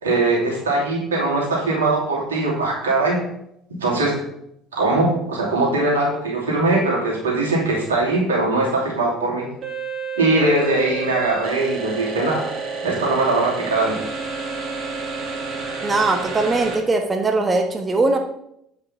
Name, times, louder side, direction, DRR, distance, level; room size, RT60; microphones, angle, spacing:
voice 1, 0.0-3.2 3.8-4.2 4.7-9.5 10.2-12.5 12.8-14.0, right 2 dB, 85° right, -3 dB, 2.9 m, -21 dB
sound 1, 9.6-16.8, right 4 dB, 45° right, 2.3 m, -30 dB
voice 2, 15.8-18.2, right 3 dB, 25° right, 4 dB, 1.2 m, -20 dB
8.7 x 5.5 x 5.7 m, 0.77 s
hypercardioid pair, 60°, 0 cm